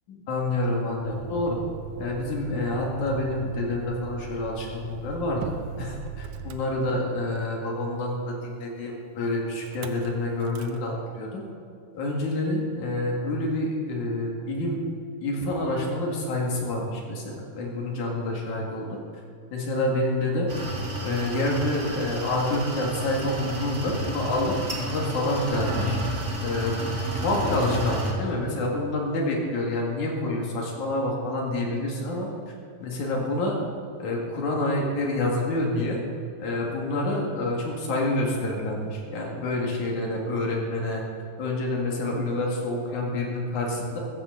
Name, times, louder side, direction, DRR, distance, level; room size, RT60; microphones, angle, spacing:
voice 1, 0.1-1.6 2.0-11.4 11.9-14.8 15.2-19.0 19.5-20.5 21.0-26.0 26.4-26.8 27.1-32.3 32.8-33.6 34.0-36.0 36.4-41.0 41.4-44.0, left 1 dB, 75° left, -1 dB, 3.6 m, -28 dB
Motor vehicle (road), 0.9-7.4 9.6-10.1 10.4-10.8, right 4 dB, 80° right, 2.2 m, -40 dB
sound 1, 20.5-28.1, equal, 25° right, 1.9 m, -31 dB
15.0 x 15.0 x 4.0 m, 2.6 s
omnidirectional pair, 3.5 m